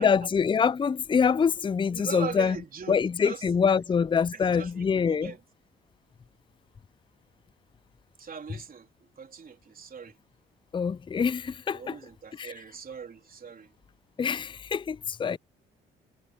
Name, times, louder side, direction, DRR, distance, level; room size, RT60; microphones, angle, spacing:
voice 1, 0.0-2.6 2.9-5.3 10.7-12.0 12.4-12.5 14.2-15.4, left 6 dB, 25° left, 0.5 m, -25 dB
voice 2, 1.9-3.5 3.8-3.9 4.3-5.4 8.2-10.2 11.7-13.7, right 6 dB, 45° right, 3.5 m, -41 dB
supercardioid pair, 55°, 21 cm